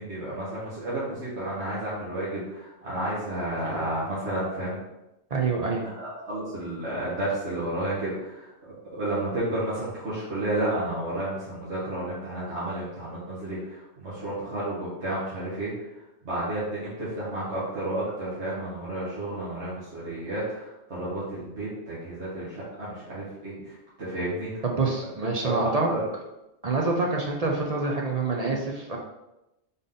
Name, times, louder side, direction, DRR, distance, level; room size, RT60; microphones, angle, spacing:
voice 1, 0.0-4.8 6.0-15.7 16.3-23.5 24.0-24.5 25.4-26.0, right 1 dB, 75° right, -10 dB, 1.7 m, -31 dB
voice 2, 5.3-5.8 24.6-25.9 26.6-29.0, right 3 dB, 45° right, -1 dB, 0.6 m, -26 dB
3.8 x 3.7 x 3.7 m, 0.92 s
omnidirectional pair, 1.2 m